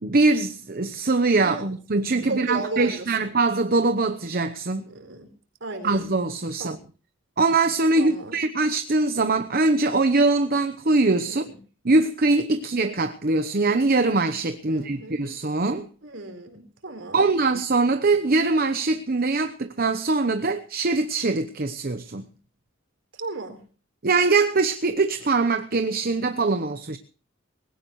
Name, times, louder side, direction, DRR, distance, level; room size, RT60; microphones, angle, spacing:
voice 1, 0.0-4.9 5.8-6.8 7.4-11.5 11.8-15.9 17.1-22.2 24.0-27.0, right 3 dB, 45° right, 0.9 m, -22 dB
voice 2, 1.4-1.8 2.3-3.1 4.9-5.3 5.6-6.0 6.6-6.8 8.0-8.4 11.3-11.6 14.7-15.2 16.0-17.3 23.1-23.6, right 2 dB, 65° right, 4.4 m, -35 dB
20.0 x 17.0 x 3.2 m
head